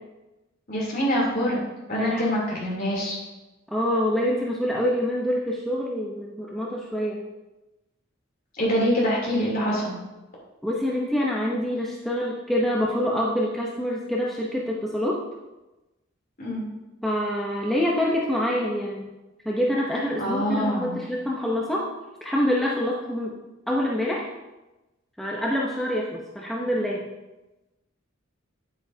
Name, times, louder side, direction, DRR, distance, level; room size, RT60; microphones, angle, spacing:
voice 1, 0.7-1.6 1.9-3.2 8.6-9.9 16.4-16.6 20.2-21.0, equal, 45° left, -4 dB, 3.1 m, -25 dB
voice 2, 2.0-2.4 3.7-7.2 10.6-15.2 17.0-19.0 19.4-21.9 22.2-23.3 23.7-24.3 25.2-27.1, equal, ahead, -4 dB, 0.8 m, -26 dB
9.3 x 8.5 x 2.8 m, 1.0 s
head